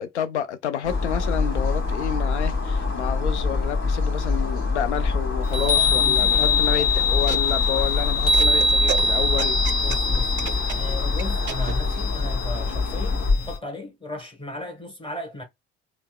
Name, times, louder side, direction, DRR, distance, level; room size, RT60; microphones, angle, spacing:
voice 1, 0.0-9.6, left 9 dB, 80° left, 0.5 m, -29 dB
sound 1, 0.8-13.3, left 3 dB, 35° left, 1.5 m, -26 dB
Chime, 5.4-13.6, left 3 dB, 65° left, 1.3 m, -23 dB
voice 2, 5.5-6.9 9.8-15.4, left 1 dB, 15° left, 1.3 m, -36 dB
sound 2, 6.6-11.7, right 12 dB, 35° right, 0.4 m, -35 dB
4.4 x 2.1 x 2.2 m
figure-of-eight pair, 55°, 34 cm